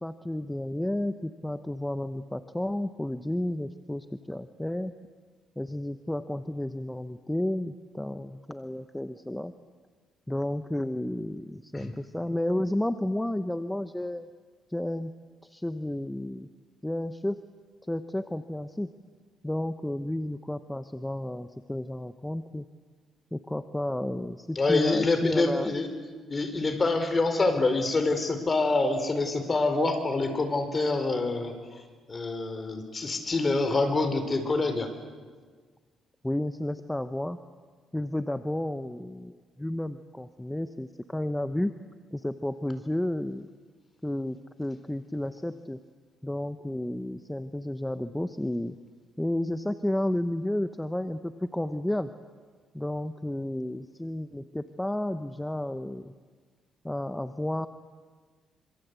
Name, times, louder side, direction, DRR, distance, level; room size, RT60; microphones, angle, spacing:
voice 1, 0.0-4.9 5.6-9.5 10.3-14.3 14.7-15.1 15.4-16.5 16.8-17.4 17.9-18.9 19.4-22.6 23.3-25.7 36.2-37.4 37.9-41.7 42.1-43.5 44.0-45.8 46.2-48.8 49.2-52.1 52.7-56.1 56.8-57.7, left 1 dB, 5° left, 10 dB, 1.0 m, -32 dB
voice 2, 24.5-25.9 26.3-31.8 32.1-34.9, left 3 dB, 30° left, 7 dB, 4.6 m, -26 dB
26.5 x 25.5 x 8.3 m, 1.5 s
cardioid pair, 90°, 0 cm